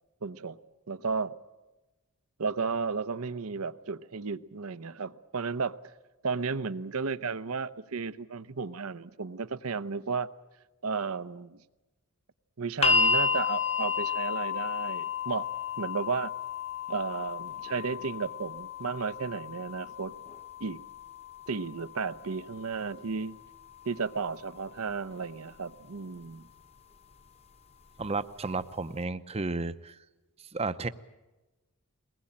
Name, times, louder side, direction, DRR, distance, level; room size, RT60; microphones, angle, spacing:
voice 1, 0.2-0.6 0.9-1.4 2.4-5.8 6.2-10.3 10.8-11.6 12.6-15.5 15.8-16.3 16.9-20.1 20.6-20.8 21.5-23.4 23.9-26.5, right 5 dB, 75° right, 15 dB, 0.8 m, -33 dB
sound 1, 12.8-24.9 26.0-26.1, left 5 dB, 30° left, 1.1 m, -32 dB
voice 2, 28.0-30.0 30.5-30.9, right 3 dB, 30° right, 13 dB, 0.7 m, -32 dB
22.0 x 20.0 x 8.7 m, 1.1 s
head